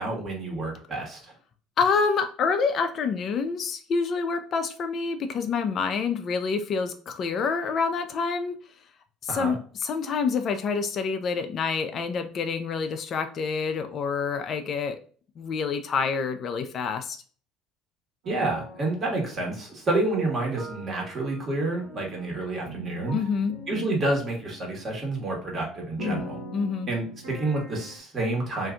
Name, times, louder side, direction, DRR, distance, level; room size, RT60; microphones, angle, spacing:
voice 1, 0.0-1.3 9.3-9.6 18.3-23.1 23.7-26.4 26.9-28.7, right 2 dB, 35° right, -1 dB, 1.3 m, -29 dB
voice 2, 1.8-8.6 9.2-15.0 15.4-17.2 23.1-23.5 26.0-26.9, left 5 dB, 45° left, 7 dB, 0.4 m, -27 dB
sound 1, 18.2-19.6 19.9-24.8 25.2-25.3 25.6-28.0, right 3 dB, 80° right, 1.0 m, -41 dB
2.6 x 2.3 x 3.7 m, 0.42 s
supercardioid pair, 95°, 0 cm